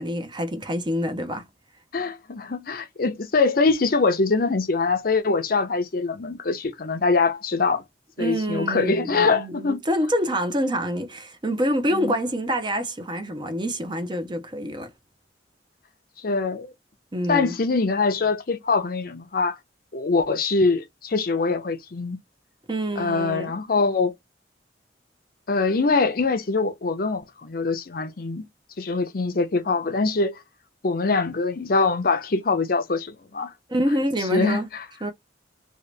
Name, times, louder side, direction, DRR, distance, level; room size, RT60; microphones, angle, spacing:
voice 1, 0.0-1.5 8.2-14.9 17.1-17.5 22.7-23.5 33.7-34.7 35.0-35.1, equal, 25° right, 0.6 m, -26 dB
voice 2, 1.9-7.8 8.2-9.8 11.9-12.1 16.2-16.7 17.3-19.6 19.9-22.2 23.0-24.1 25.5-28.5 28.8-30.4 30.8-33.5 34.3-34.8, left 4 dB, 55° left, 0.6 m, -23 dB
2.9 x 2.7 x 3.2 m
head